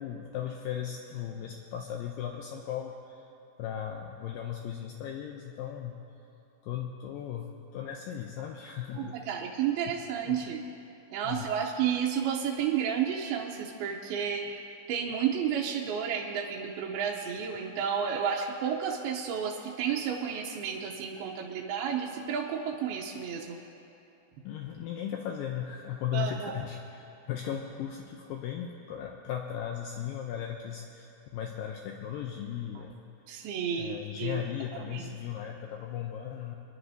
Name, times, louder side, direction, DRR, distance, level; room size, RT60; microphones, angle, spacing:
voice 1, 0.0-3.2 3.6-6.0 6.6-9.1 10.2-10.4 11.2-11.5 24.4-33.1 33.8-36.6, left 9 dB, 90° left, 1 dB, 2.0 m, -37 dB
voice 2, 8.9-10.6 11.1-14.4 14.9-23.6 26.1-26.7 33.3-34.4 34.7-35.1, right 8 dB, 75° right, -1 dB, 2.5 m, -31 dB
26.0 x 11.0 x 2.7 m, 2.9 s
omnidirectional pair, 4.8 m